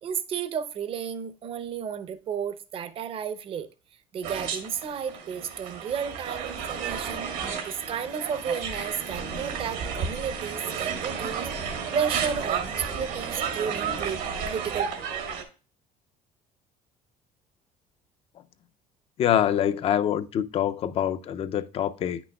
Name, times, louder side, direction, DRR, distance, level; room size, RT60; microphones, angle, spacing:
voice 1, 0.0-3.7 4.1-7.3 7.7-14.2 14.5-14.9, right 7 dB, 40° right, 0.7 m, -32 dB
sound 1, 4.2-15.4, right 6 dB, 80° right, 1.6 m, -32 dB
voice 2, 19.2-22.2, left 10 dB, 45° left, 0.5 m, -25 dB
9.1 x 6.1 x 2.3 m
cardioid pair, 140°, 14 cm